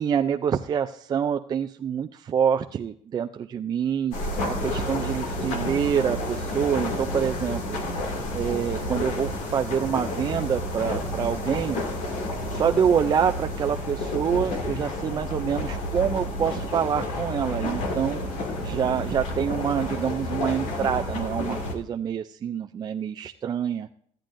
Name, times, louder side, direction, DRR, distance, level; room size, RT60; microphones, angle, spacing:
voice 1, 0.0-8.0 8.3-11.8 12.5-23.9, right 8 dB, 30° right, 5 dB, 0.4 m, -26 dB
sound 1, 4.1-21.7, left 1 dB, 75° left, 2.3 m, -30 dB
sound 2, 10.6-20.3, left 4 dB, 5° right, 1.5 m, -43 dB
14.5 x 9.0 x 2.6 m, 0.62 s
cardioid pair, 150°, 13 cm